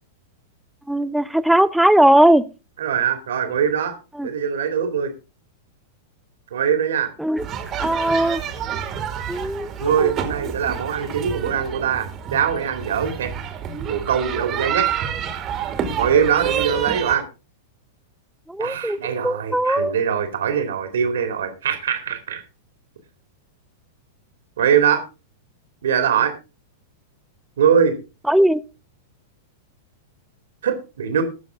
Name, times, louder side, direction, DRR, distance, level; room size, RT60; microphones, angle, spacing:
voice 1, 0.9-2.5 4.2-4.3 7.2-7.5 7.7-8.4 9.3-10.1 18.5-19.9 28.3-28.6, right 1 dB, ahead, 15 dB, 0.6 m, -18 dB
voice 2, 2.8-4.0 4.2-5.1 6.5-7.1 9.8-13.3 13.9-14.9 16.0-17.2 18.6-22.4 24.6-25.0 25.8-26.3 27.6-27.9 30.6-31.2, right 8 dB, 60° right, 7 dB, 2.4 m, -22 dB
sound 1, 7.4-17.2, right 8 dB, 30° right, 2.3 m, -28 dB
19.0 x 7.1 x 3.6 m, 0.30 s
figure-of-eight pair, 95°, 0 cm